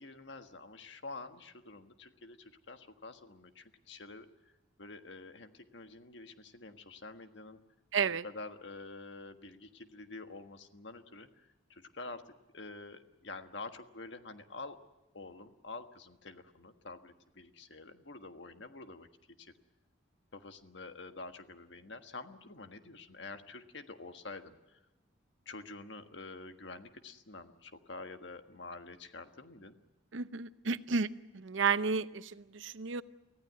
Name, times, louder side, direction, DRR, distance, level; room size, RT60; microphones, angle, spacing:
voice 1, 0.0-4.3 4.8-7.6 8.2-11.3 11.7-12.2 12.5-14.8 15.1-19.1 19.4-19.5 20.3-24.8 25.4-29.7, left 3 dB, 65° left, 7 dB, 1.5 m, -47 dB
voice 2, 7.9-8.2 30.1-31.1 31.3-33.0, right 5 dB, 75° right, 14 dB, 0.7 m, -32 dB
24.5 x 16.0 x 9.4 m, 1.0 s
head